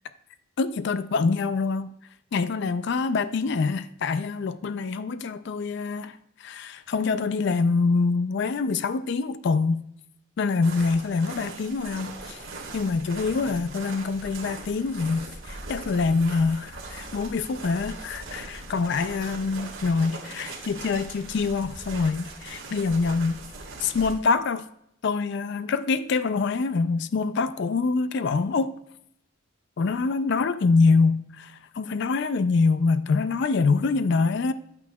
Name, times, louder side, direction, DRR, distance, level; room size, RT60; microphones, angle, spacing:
voice 1, 0.6-1.9 2.3-9.8 10.4-12.4 12.7-23.4 23.8-24.7 25.0-28.7 29.8-34.5, left 4 dB, 55° left, 0.4 m, -25 dB
sound 1, 10.6-24.1, right 3 dB, 75° right, 1.7 m, -40 dB
10.5 x 8.6 x 2.3 m
head